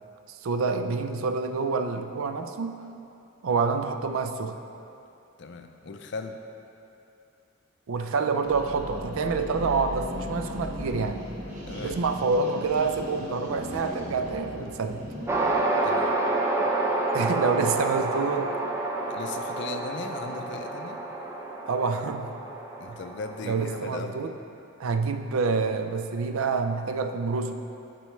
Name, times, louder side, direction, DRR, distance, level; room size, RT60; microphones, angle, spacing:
voice 1, 0.3-2.8 3.4-4.6 7.9-11.3 11.8-15.1 17.1-18.6 21.6-22.4 22.9-23.0 23.4-24.3 24.8-27.5, right 4 dB, 90° right, 7 dB, 0.4 m, -27 dB
voice 2, 5.4-6.4 11.6-12.0 15.8-16.2 19.1-21.0 22.8-24.2, left 4 dB, 60° left, 6 dB, 0.5 m, -38 dB
sound 1, 8.5-15.6, equal, 35° right, 1.1 m, -37 dB
sound 2, 15.3-23.8, right 2 dB, 15° right, 0.5 m, -29 dB
11.0 x 4.6 x 3.1 m, 2.8 s
head